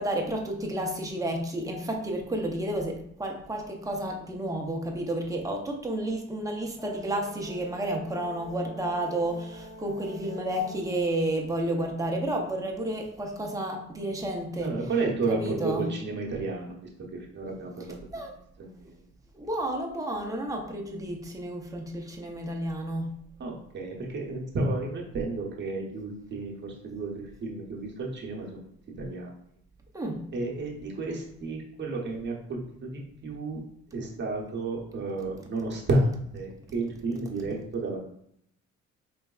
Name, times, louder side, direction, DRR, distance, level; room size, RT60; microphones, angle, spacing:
voice 1, 0.0-14.8 15.3-15.9 18.1-18.3 19.4-23.1 29.9-30.3, right 1 dB, 10° right, 0 dB, 0.5 m, -31 dB
Brass instrument, 6.8-11.0, right 1 dB, 15° left, 1.3 m, -46 dB
voice 2, 14.6-16.8 17.3-17.9 18.6-18.7 23.4-28.6 29.0-29.3 30.3-32.9 33.2-33.6 33.9-38.0, right 2 dB, 40° right, -1 dB, 0.8 m, -31 dB
4.7 x 3.3 x 2.3 m, 0.71 s
cardioid pair, 145°, 29 cm